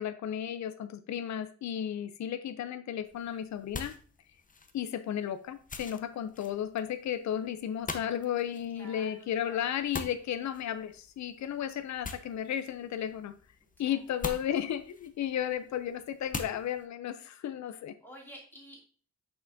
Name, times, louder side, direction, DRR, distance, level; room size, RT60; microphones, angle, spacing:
voice 1, 0.0-4.0 4.7-13.3 13.8-17.9, left 10 dB, 75° left, 12 dB, 0.5 m, -34 dB
sound 1, 3.0-16.9, left 4 dB, 30° left, 0.6 m, -45 dB
voice 2, 8.7-9.6 13.8-14.0 18.0-18.8, right 1 dB, 5° left, -3 dB, 2.5 m, -51 dB
6.6 x 5.7 x 2.6 m, 0.42 s
wide cardioid pair, 120°, 29 cm